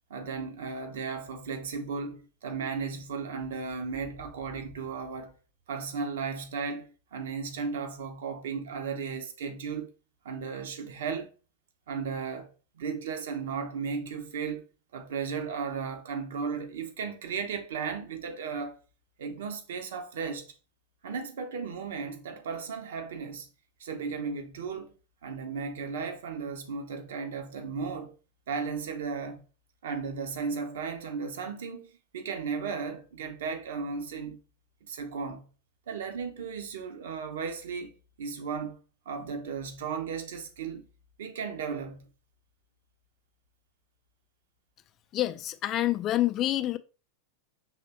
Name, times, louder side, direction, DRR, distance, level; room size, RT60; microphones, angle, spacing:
voice 1, 0.1-5.3 5.7-9.9 10.2-11.3 11.9-12.5 12.7-14.6 14.9-18.8 19.2-20.5 21.0-23.5 23.8-24.9 25.2-28.2 28.5-29.4 29.8-34.4 34.8-35.5 35.9-40.8 41.2-42.1, right 5 dB, 60° right, 0.8 m, -35 dB
voice 2, 45.1-46.8, left 14 dB, 35° left, 0.3 m, -27 dB
5.7 x 3.2 x 2.9 m
figure-of-eight pair, 90°, 0 cm